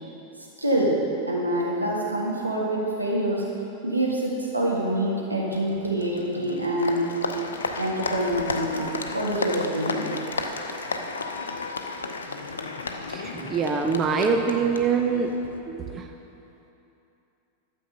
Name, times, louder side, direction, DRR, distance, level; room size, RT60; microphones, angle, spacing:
voice 1, 0.6-3.5 3.8-7.1 7.8-10.1, right 1 dB, 85° right, -4 dB, 1.9 m, -26 dB
Applause, 5.5-15.6, left 4 dB, 70° left, 0.7 m, -33 dB
voice 2, 13.1-15.3 15.7-16.0, right 5 dB, 25° right, 3 dB, 0.7 m, -24 dB
12.0 x 7.6 x 5.5 m, 2.9 s
figure-of-eight pair, 90°, 0 cm